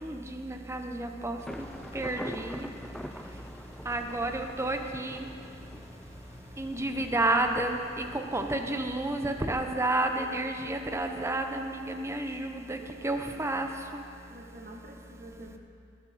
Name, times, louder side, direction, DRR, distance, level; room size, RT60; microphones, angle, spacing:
voice 1, 0.0-1.4 1.9-2.7 3.9-5.2 6.6-12.8 13.0-13.7, right 2 dB, 15° right, 5 dB, 0.9 m, -30 dB
Engine, 1.4-9.4, left 1 dB, 30° left, 1.6 m, -50 dB
Thunder, 1.5-7.1, equal, ahead, 0.4 m, -44 dB
voice 2, 2.2-2.6 4.2-4.3 6.9-7.0 14.3-15.6, right 1 dB, 45° right, 2 dB, 1.1 m, -48 dB
20.5 x 10.5 x 4.2 m, 2.4 s
head